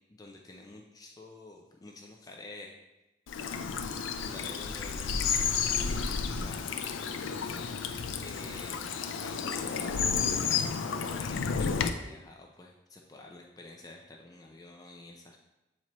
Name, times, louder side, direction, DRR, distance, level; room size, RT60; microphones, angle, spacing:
voice 1, 0.1-2.7 3.8-6.6 8.2-10.6 11.0-15.4, left 2 dB, 20° left, 1 dB, 0.4 m, -49 dB
Bird vocalization bird call bird song / Stream, 3.3-11.9, left 6 dB, 80° left, 0.4 m, -31 dB
7.4 x 4.3 x 3.0 m, 0.98 s
head